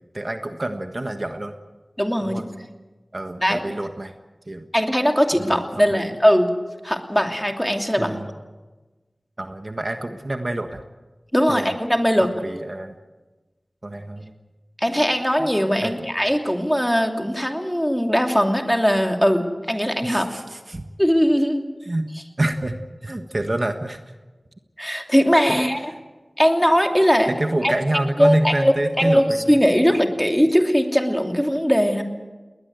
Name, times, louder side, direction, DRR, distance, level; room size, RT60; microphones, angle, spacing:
voice 1, 0.1-1.5 2.2-2.5 3.1-4.1 4.5-4.7 5.4-6.1 8.0-8.3 9.4-10.8 11.5-11.8 12.4-13.0 13.8-14.3 15.4-15.9 20.0-20.9 21.8-22.1 22.4-22.7 23.0-24.0 25.5-25.6 27.3-29.6, right 1 dB, 45° right, 6 dB, 1.4 m, -27 dB
voice 2, 2.0-2.5 3.4-3.6 4.7-6.5 6.8-8.2 11.3-12.3 14.8-20.3 21.0-21.6 24.8-25.8 26.4-27.3 27.6-27.7 28.2-32.0, equal, 5° left, 4 dB, 2.9 m, -20 dB
20.5 x 20.0 x 8.1 m, 1.2 s
wide cardioid pair, 45°, 0 cm